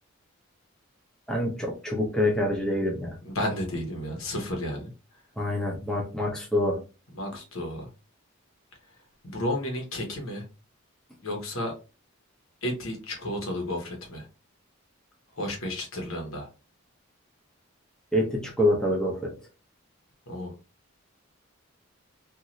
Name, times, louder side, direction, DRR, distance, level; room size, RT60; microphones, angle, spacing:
voice 1, 1.3-3.2 5.4-6.8 18.1-19.3, left 1 dB, 5° left, -2 dB, 0.7 m, -26 dB
voice 2, 3.2-4.9 7.1-7.9 9.2-10.4 11.2-11.7 12.6-14.2 15.4-16.5 20.3-20.5, left 1 dB, 75° left, 2 dB, 1.1 m, -32 dB
2.6 x 2.6 x 3.0 m, 0.31 s
head